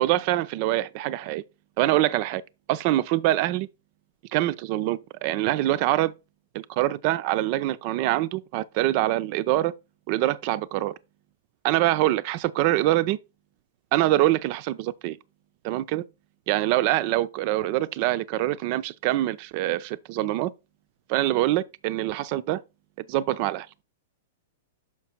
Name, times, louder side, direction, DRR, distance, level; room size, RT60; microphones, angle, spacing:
voice 1, 0.0-1.4 1.8-2.4 2.7-3.7 4.3-6.1 6.5-9.7 10.1-10.9 11.6-13.2 13.9-15.2 15.6-16.0 16.5-20.5 21.1-22.6 23.1-23.7, right 15 dB, 50° right, 0.5 m, -24 dB
5.9 x 5.8 x 4.5 m
hypercardioid pair, 115°, 0 cm